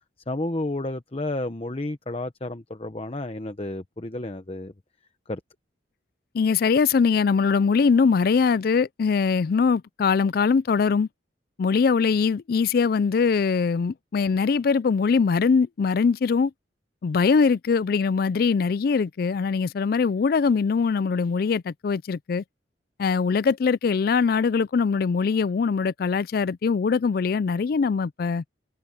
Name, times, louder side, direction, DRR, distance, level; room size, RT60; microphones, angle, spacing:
voice 1, 0.3-4.7 5.3-5.4, left 2 dB, 30° left, 0.9 m, -31 dB
voice 2, 6.3-11.1 11.6-16.5 17.0-22.4 23.0-28.4, left 5 dB, 55° left, 0.3 m, -22 dB
head